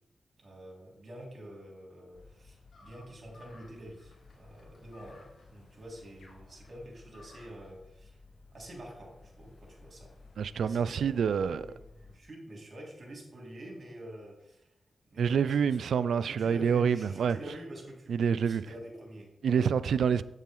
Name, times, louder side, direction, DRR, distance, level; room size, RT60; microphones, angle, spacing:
voice 1, 0.4-8.2 8.5-10.1 10.6-14.7 15.1-15.8 16.2-19.7, right 1 dB, 50° right, 3.5 m, -47 dB
sound 1, 2.1-12.2, left 3 dB, 60° left, 3.7 m, -56 dB
sound 2, 2.7-7.7, left 2 dB, 80° left, 2.1 m, -59 dB
voice 2, 10.4-11.7 15.2-17.4 18.1-18.6 19.4-20.2, right 7 dB, 85° right, 0.3 m, -27 dB
8.3 x 7.3 x 3.8 m
cardioid pair, 50°, 0 cm